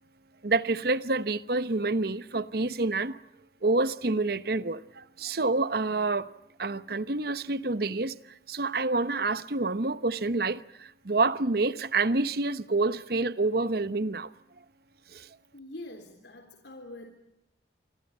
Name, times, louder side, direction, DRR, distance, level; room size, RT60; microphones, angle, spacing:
voice 1, 0.4-3.2 3.6-6.3 6.6-14.3 15.1-15.4, right 3 dB, 60° right, 1.0 m, -28 dB
voice 2, 15.5-17.1, left 1 dB, 80° left, 3.5 m, -44 dB
28.0 x 25.0 x 5.6 m
head